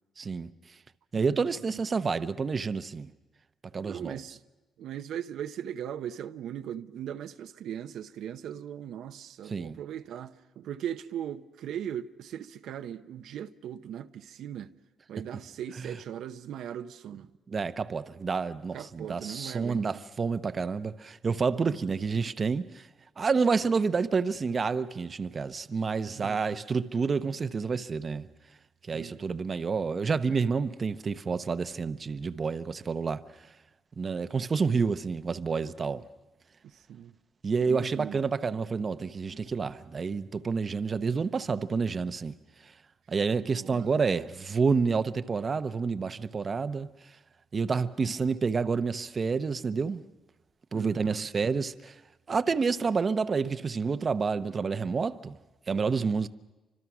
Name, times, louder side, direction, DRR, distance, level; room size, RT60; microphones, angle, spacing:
voice 1, 0.2-0.5 1.1-3.1 3.7-4.2 9.4-9.8 15.8-15.9 17.5-22.9 23.2-28.3 28.9-33.2 34.0-36.1 37.4-42.3 42.6-42.7 43.1-46.9 47.5-50.0 50.7-52.0 52.3-55.4 55.7-56.3, right 5 dB, 40° right, 0.8 m, -29 dB
voice 2, 1.2-1.8 3.8-4.4 4.8-14.7 15.1-17.3 18.7-20.0 21.6-21.8 26.1-26.6 28.9-29.2 36.6-37.1 37.6-38.2 43.4-43.9 50.7-51.3, right 10 dB, 75° right, 0.8 m, -39 dB
29.5 x 25.5 x 6.0 m
cardioid pair, 90°, 0 cm